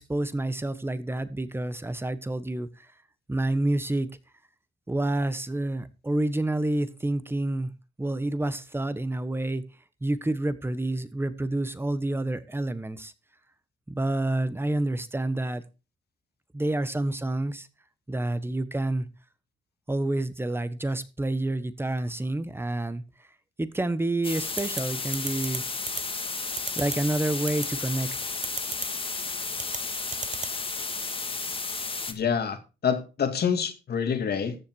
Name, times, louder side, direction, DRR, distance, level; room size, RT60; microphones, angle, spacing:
voice 1, 0.0-2.9 3.3-4.1 4.9-7.7 8.0-9.6 10.0-13.1 13.9-15.6 16.5-17.7 18.1-19.1 19.9-23.0 23.6-25.6 26.8-28.3, right 1 dB, 10° right, 1.3 m, -28 dB
sound 1, 24.2-32.1, left 4 dB, 25° left, 2.0 m, -33 dB
sound 2, 24.6-24.8 25.1-25.6 25.9-26.0 26.6-27.0 27.5-27.7 28.4-28.9 29.6-29.8 30.1-30.5, right 6 dB, 35° right, 1.0 m, -32 dB
voice 2, 32.1-34.6, left 7 dB, 55° left, 2.4 m, -27 dB
14.0 x 7.1 x 4.7 m
cardioid pair, 90°, 20 cm